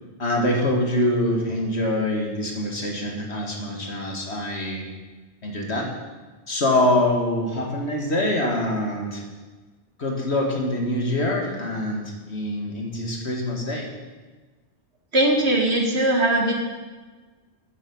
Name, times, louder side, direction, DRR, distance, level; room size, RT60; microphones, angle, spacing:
voice 1, 0.2-4.9 5.4-5.9 6.5-9.2 10.0-13.9, left 1 dB, 70° left, 1 dB, 2.5 m, -24 dB
voice 2, 15.1-16.5, right 1 dB, 70° right, 1 dB, 2.3 m, -20 dB
13.0 x 10.5 x 5.5 m, 1.3 s
omnidirectional pair, 1.1 m